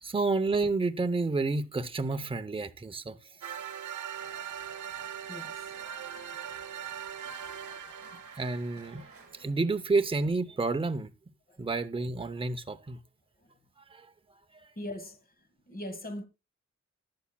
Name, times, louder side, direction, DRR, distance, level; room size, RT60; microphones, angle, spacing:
voice 1, 0.0-3.2 8.1-11.1 11.6-13.0 13.9-14.1, right 3 dB, 20° right, 0.6 m, -30 dB
sound 1, 3.4-9.3, right 9 dB, 90° right, 0.9 m, -41 dB
sound 2, 4.1-9.4, right 3 dB, 50° right, 3.8 m, -53 dB
voice 2, 5.3-5.7 7.4-7.6 11.5-11.6 14.8-15.2 15.7-16.2, left 1 dB, 30° left, 1.6 m, -40 dB
20.0 x 7.1 x 2.2 m
wide cardioid pair, 160°, 29 cm